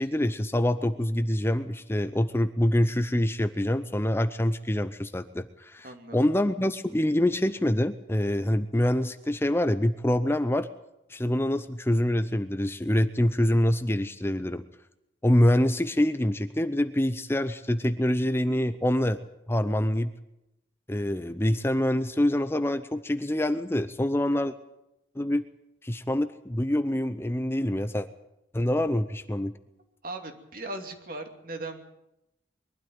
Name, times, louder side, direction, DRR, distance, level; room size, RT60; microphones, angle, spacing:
voice 1, 0.0-10.7 11.1-14.6 15.2-19.2 19.5-20.1 20.9-24.5 25.2-25.4 25.8-28.1 28.5-29.5, left 1 dB, 15° left, 10 dB, 0.6 m, -25 dB
voice 2, 5.8-6.3 30.0-31.8, right 2 dB, 50° right, 5 dB, 2.7 m, -38 dB
22.5 x 12.5 x 9.5 m, 0.87 s
head